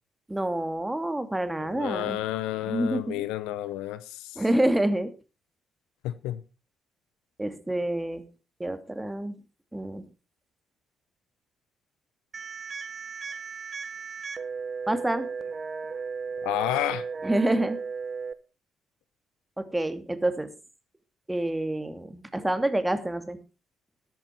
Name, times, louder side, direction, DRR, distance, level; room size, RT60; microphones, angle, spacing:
voice 1, 0.3-2.2 2.7-3.2 4.4-5.1 7.4-8.2 8.6-9.4 9.7-10.0 14.9-15.3 17.2-17.8 19.6-20.5 21.3-23.4, right 1 dB, 10° right, 2.5 m, -27 dB
voice 2, 1.6-4.4 6.0-6.4 16.4-17.1, left 14 dB, 70° left, 0.8 m, -30 dB
sound 1, 12.3-18.3, right 5 dB, 40° right, 1.2 m, -35 dB
13.5 x 11.0 x 4.5 m
figure-of-eight pair, 45°, 0 cm